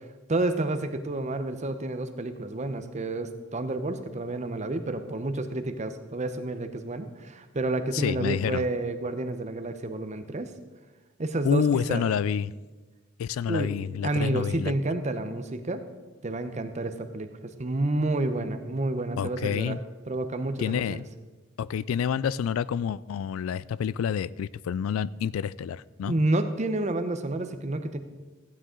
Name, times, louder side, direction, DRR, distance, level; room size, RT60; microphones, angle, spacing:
voice 1, 0.3-10.5 11.2-12.0 13.5-13.8 14.0-15.8 16.2-19.8 20.1-21.0 26.1-28.0, right 2 dB, 35° right, 9 dB, 0.8 m, -29 dB
voice 2, 7.9-8.6 11.4-12.5 13.2-14.7 19.2-19.8 20.6-21.0 21.6-26.1, left 7 dB, 85° left, 19 dB, 0.3 m, -28 dB
15.0 x 9.4 x 3.8 m, 1.3 s
head